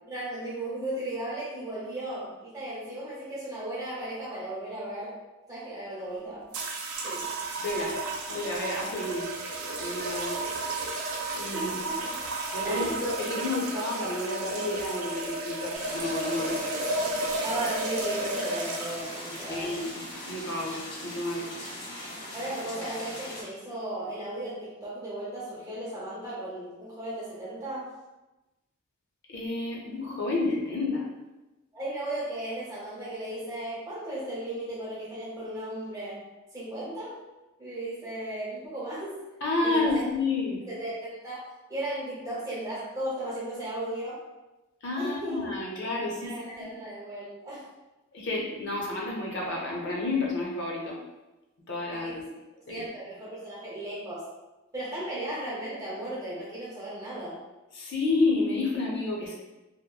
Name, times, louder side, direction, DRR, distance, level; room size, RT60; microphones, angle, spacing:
voice 1, 0.0-5.2 5.5-6.5 7.0-7.3 11.5-12.2 12.6-13.0 17.4-19.8 22.3-27.9 31.7-36.3 36.5-37.2 37.6-39.2 39.6-40.0 40.7-41.4 41.7-44.2 45.0-45.5 46.2-47.6 51.9-52.2 52.7-54.3 54.7-57.4, right 1 dB, 15° right, -7 dB, 0.7 m, -36 dB
sound 1, 6.5-20.8, right 2 dB, 80° right, 0.4 m, -33 dB
voice 2, 7.6-7.9 8.3-9.3 9.8-10.4 11.4-11.7 12.5-16.6 19.5-21.5 29.3-31.0 39.4-40.6 44.8-46.3 48.1-51.0 51.7-52.2 52.7-52.8 57.7-59.3, left 2 dB, 50° left, -3 dB, 0.6 m, -30 dB
sound 2, 15.7-23.4, left 1 dB, 80° left, 0.8 m, -40 dB
2.8 x 2.0 x 2.3 m, 1.1 s
head